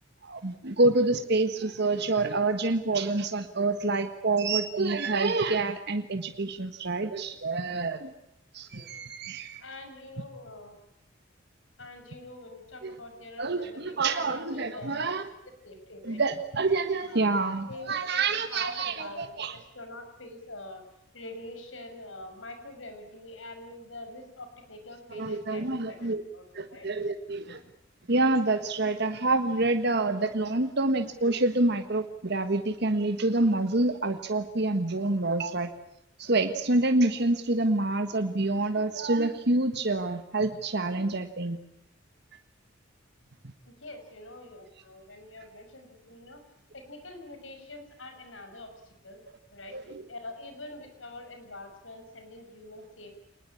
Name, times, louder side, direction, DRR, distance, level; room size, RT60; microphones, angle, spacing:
voice 1, 0.2-8.1 8.5-9.6 12.8-12.9 13.4-15.3 16.0-19.6 25.1-26.2 26.5-27.6 28.1-35.7 36.2-41.6 49.7-50.0, right 2 dB, 60° right, 8 dB, 1.6 m, -27 dB
voice 2, 9.6-10.8 11.8-15.1 15.6-16.2 17.1-17.4 17.7-20.8 21.1-26.9 43.6-46.4 46.7-49.2 49.5-49.8 50.1-53.2, left 2 dB, 85° left, 6 dB, 6.3 m, -45 dB
26.5 x 20.5 x 8.5 m, 0.81 s
head